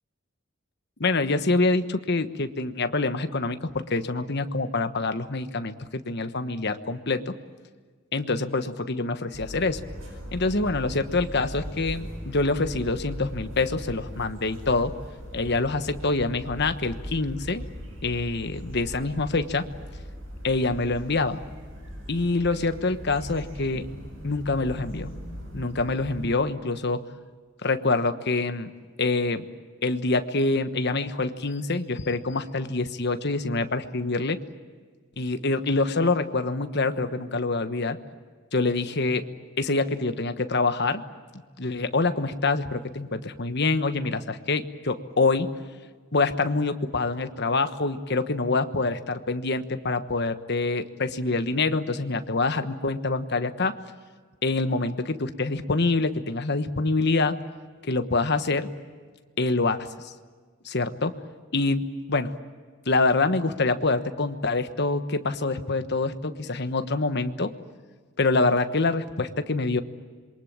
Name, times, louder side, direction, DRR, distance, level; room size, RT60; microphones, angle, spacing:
voice 1, 1.0-7.4 8.1-9.8 10.3-14.9 15.3-17.6 18.0-19.7 20.4-21.4 22.1-23.9 24.2-25.1 25.5-27.1 27.6-28.7 29.0-29.5 29.8-34.4 35.2-38.0 38.5-39.3 39.6-41.0 41.3-45.5 46.1-53.7 54.4-57.4 57.8-58.7 59.4-60.1 60.6-61.1 61.5-62.3 62.9-67.5 68.2-69.8, left 3 dB, 50° left, 10 dB, 1.3 m, -26 dB
sound 1, 9.3-26.3, equal, 65° right, 7.9 m, -39 dB
27.0 x 23.0 x 8.8 m, 1.5 s
head